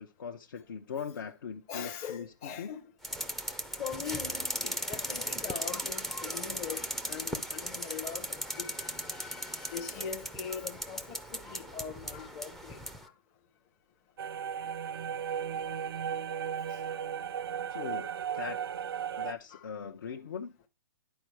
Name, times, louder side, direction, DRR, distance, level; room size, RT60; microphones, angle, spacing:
voice 1, 0.0-2.7 17.7-18.6 19.2-20.7, left 7 dB, 65° left, 0.8 m, -40 dB
voice 2, 1.7-2.9 3.8-13.1 16.7-16.8 19.5-19.7, left 7 dB, 25° left, 0.8 m, -42 dB
sound 1, 3.0-13.0, right 1 dB, ahead, 0.4 m, -37 dB
sound 2, 14.2-19.3, right 8 dB, 85° right, 0.4 m, -35 dB
10.5 x 4.5 x 4.7 m
hypercardioid pair, 160°, 12 cm